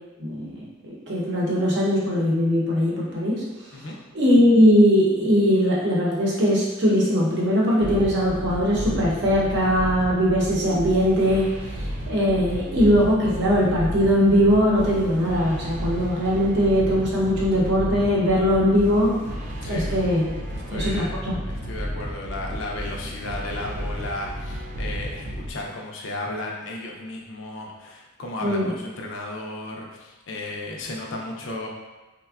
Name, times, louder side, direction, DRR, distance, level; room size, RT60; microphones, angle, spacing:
voice 1, 0.2-0.6 1.1-3.4 4.1-11.5 12.1-19.2 19.6-20.3 20.7-21.3 28.4-28.7, equal, 55° right, -5 dB, 0.7 m, -20 dB
sound 1, 7.8-25.5, equal, 35° right, 0.3 m, -33 dB
voice 2, 20.5-31.7, left 2 dB, 60° left, -1 dB, 0.4 m, -34 dB
3.4 x 2.2 x 2.3 m, 1.1 s
head